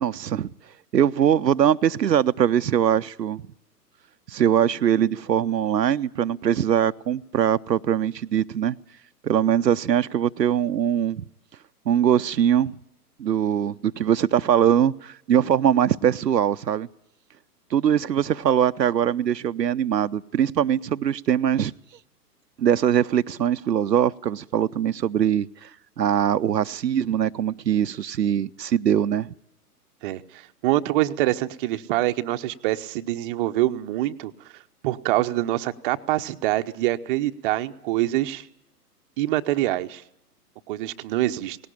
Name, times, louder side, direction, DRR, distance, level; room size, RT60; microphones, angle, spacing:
voice 1, 0.0-0.5 0.9-3.4 4.3-8.7 9.2-11.2 11.9-12.7 13.2-16.9 17.7-21.7 22.6-25.7 26.0-29.3, right 9 dB, 80° right, 0.7 m, -22 dB
voice 2, 30.0-34.3 34.8-38.5 39.2-40.0 40.7-41.6, right 15 dB, 35° right, 0.9 m, -25 dB
18.5 x 17.0 x 10.0 m
figure-of-eight pair, 120°, 49 cm